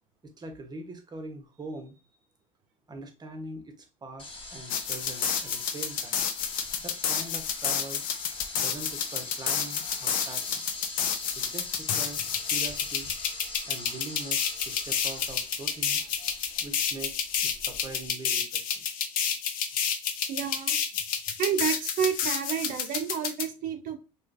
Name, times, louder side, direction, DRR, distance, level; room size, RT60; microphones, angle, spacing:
voice 1, 0.4-1.9 2.9-6.2 6.8-8.0 8.5-10.7 11.3-12.2 12.5-13.1 13.7-16.0 16.6-18.8, right 2 dB, 25° right, 5 dB, 0.9 m, -42 dB
sound 1, 4.2-18.1, left 2 dB, 30° left, 1.2 m, -42 dB
sound 2, 4.7-23.4, left 8 dB, 55° left, 0.6 m, -30 dB
voice 2, 20.3-20.8 21.4-24.0, right 8 dB, 50° right, 6 dB, 0.7 m, -30 dB
3.1 x 3.1 x 2.5 m, 0.32 s
supercardioid pair, 90°, 18 cm